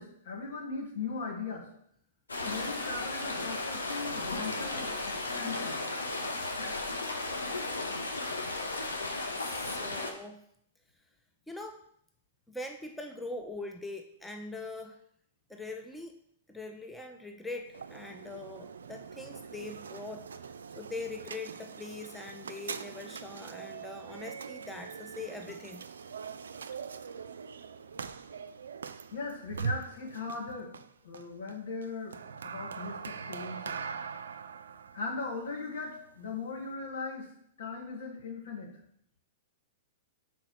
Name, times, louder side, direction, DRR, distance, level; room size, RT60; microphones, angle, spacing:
voice 1, 0.0-1.7 2.4-5.8 29.1-30.7 31.0-32.2 32.4-33.8 34.9-37.3 37.6-38.7, left 4 dB, 70° left, 0 dB, 1.8 m, -39 dB
sound 1, 2.3-10.1, left 2 dB, 90° left, 1.0 m, -35 dB
voice 2, 9.2-10.4 11.5-11.9 12.5-15.0 15.5-16.1 16.5-20.3 20.8-25.8, left 2 dB, 5° left, 4 dB, 0.6 m, -42 dB
sound 2, 17.7-36.7, right 6 dB, 80° right, 0.4 m, -42 dB
4.9 x 4.4 x 5.9 m, 0.70 s
hypercardioid pair, 110°, 0 cm